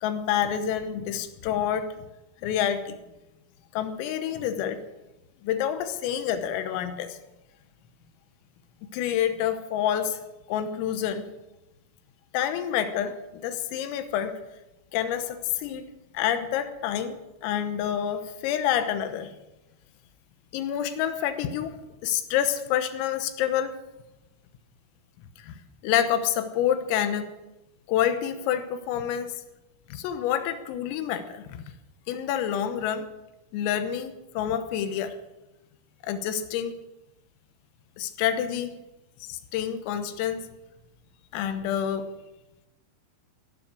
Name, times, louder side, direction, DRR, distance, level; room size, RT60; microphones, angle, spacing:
voice 1, 0.0-2.0 2.4-3.0 3.7-4.8 5.4-7.2 8.9-10.2 10.5-11.3 12.3-14.3 14.9-15.8 16.2-19.3 20.5-23.8 25.4-27.3 27.9-29.3 29.9-31.6 32.1-33.1 33.5-35.2 36.0-36.8 38.0-38.8 39.2-40.5 41.3-42.1, left 10 dB, 90° left, 9 dB, 3.7 m, -28 dB
16.5 x 12.0 x 6.4 m, 0.98 s
omnidirectional pair, 5.9 m